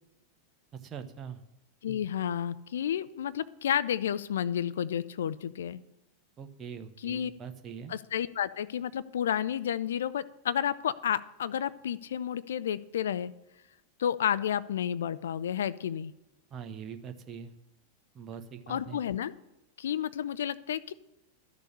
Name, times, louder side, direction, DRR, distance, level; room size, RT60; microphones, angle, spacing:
voice 1, 0.7-1.4 6.4-7.9 16.5-17.5 18.1-19.0, right 7 dB, 25° right, 7 dB, 1.0 m, -42 dB
voice 2, 1.8-5.8 7.0-7.3 7.9-13.3 14.0-16.1 18.7-19.3 19.8-20.9, left 9 dB, 60° left, 14 dB, 0.5 m, -31 dB
12.0 x 6.7 x 8.5 m, 0.92 s
figure-of-eight pair, 90°, 0 cm